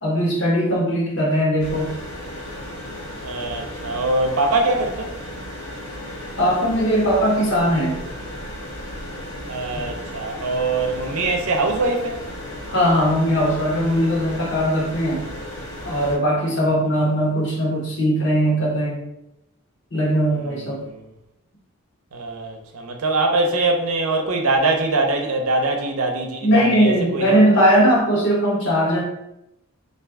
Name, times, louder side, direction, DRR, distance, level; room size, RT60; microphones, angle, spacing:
voice 1, 0.0-1.9 6.4-8.0 12.7-15.3 15.8-19.0 19.9-20.8 26.4-29.0, equal, 55° left, 1.0 m, -19 dB
sound 1, 1.6-16.2, left 1 dB, 75° left, 1.4 m, -34 dB
voice 2, 3.2-5.1 9.5-12.2 16.7-16.8 20.3-21.1 22.1-27.4, right 2 dB, 80° right, 0.6 m, -23 dB
3.4 x 2.5 x 3.5 m
head